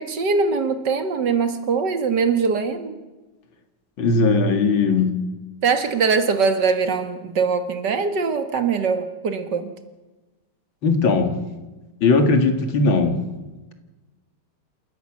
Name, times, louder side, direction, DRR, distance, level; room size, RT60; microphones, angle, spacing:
voice 1, 0.0-3.0 5.6-9.7, right 5 dB, 55° right, 9 dB, 2.2 m, -22 dB
voice 2, 4.0-5.2 10.8-11.4 12.0-13.2, left 3 dB, 65° left, 7 dB, 2.7 m, -18 dB
27.5 x 14.0 x 7.4 m, 1.2 s
omnidirectional pair, 2.3 m